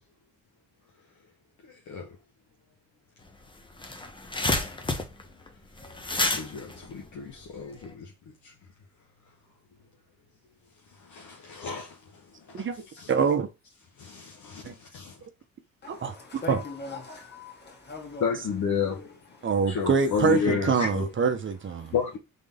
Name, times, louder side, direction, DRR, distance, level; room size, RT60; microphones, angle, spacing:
voice 1, 1.6-2.2 6.2-8.1 8.4-8.5 10.9-12.7 12.9-13.1 14.0-15.2 18.2-19.2 19.7-21.1 21.9-22.2, left 6 dB, 70° left, 1.2 m, -31 dB
sound 1, 3.3-3.4 3.6-7.9, left 2 dB, 15° left, 0.9 m, -30 dB
voice 2, 13.1-13.5 14.6-14.7 15.9-16.6 19.4-21.9, right 5 dB, 40° right, 0.8 m, -25 dB
voice 3, 15.8-18.3 19.4-19.5 21.8-21.9, left 3 dB, 35° left, 2.1 m, -40 dB
3.9 x 3.7 x 3.5 m
cardioid pair, 90°, 30 cm